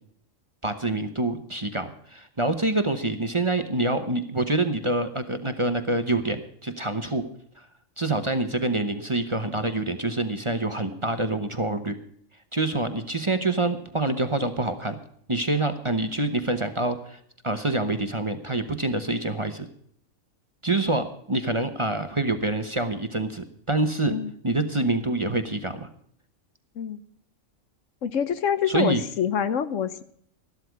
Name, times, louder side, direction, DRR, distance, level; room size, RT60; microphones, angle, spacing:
voice 1, 0.6-7.2 8.0-12.0 12.5-15.0 15.3-17.2 17.4-19.7 20.6-24.1 24.4-25.9 28.7-29.0, right 2 dB, 25° right, 8 dB, 1.0 m, -26 dB
voice 2, 28.0-30.0, left 8 dB, 70° left, 13 dB, 1.2 m, -26 dB
13.5 x 12.0 x 4.7 m, 0.64 s
omnidirectional pair, 1.4 m